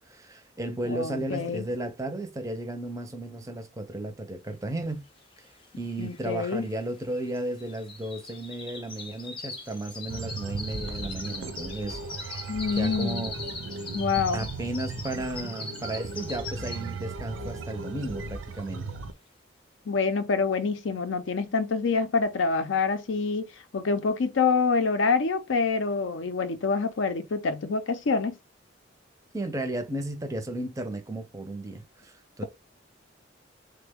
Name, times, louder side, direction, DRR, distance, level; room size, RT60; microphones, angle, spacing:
voice 1, 0.0-5.0 5.4-5.5 5.8-12.4 12.7-13.3 14.3-18.8 29.3-32.4, right 1 dB, 15° right, 0.5 m, -34 dB
voice 2, 0.8-1.7 6.0-6.6 12.5-13.3 13.9-14.5 19.9-23.4 23.7-28.4, left 4 dB, 80° left, 0.5 m, -26 dB
sound 1, 5.4-5.5 5.6-17.1 17.5-17.8 18.2-18.3, left 3 dB, 25° left, 0.5 m, -41 dB
sound 2, 10.1-19.1, right 3 dB, 80° right, 0.5 m, -37 dB
3.3 x 2.1 x 3.5 m
head